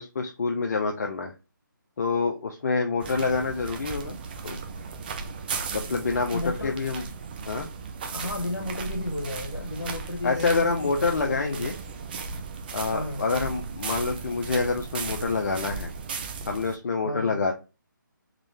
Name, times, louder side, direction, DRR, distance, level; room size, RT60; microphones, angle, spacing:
voice 1, 0.0-1.3 2.0-4.2 4.4-4.6 5.7-7.0 7.5-7.7 10.2-11.7 12.7-15.9 16.5-17.5, left 4 dB, 50° left, 3 dB, 0.7 m, -27 dB
sound 1, 3.0-16.7, right 5 dB, 25° right, 0.5 m, -36 dB
voice 2, 6.3-6.8 8.1-11.7 12.9-13.2 17.0-17.4, left 2 dB, 90° left, 1 dB, 1.1 m, -33 dB
3.8 x 3.2 x 3.2 m, 0.29 s
figure-of-eight pair, 155°, 11 cm